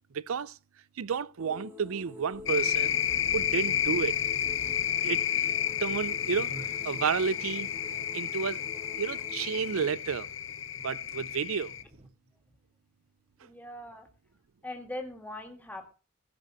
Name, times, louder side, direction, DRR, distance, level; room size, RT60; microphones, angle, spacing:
voice 1, 0.1-0.6 1.0-3.0 3.3-4.2 5.0-5.2 5.8-6.5 6.8-7.7 8.1-8.6 9.0-10.3 10.8-11.8, right 6 dB, 90° right, 0.5 m, -31 dB
sound 1, 1.4-9.9, left 1 dB, 10° right, 2.4 m, -48 dB
sound 2, 2.3-12.1, right 1 dB, 35° right, 2.2 m, -51 dB
sound 3, 2.5-11.8, left 10 dB, 65° left, 0.8 m, -31 dB
voice 2, 13.4-14.1 14.6-15.9, left 1 dB, 10° left, 2.2 m, -41 dB
15.5 x 5.3 x 7.5 m
head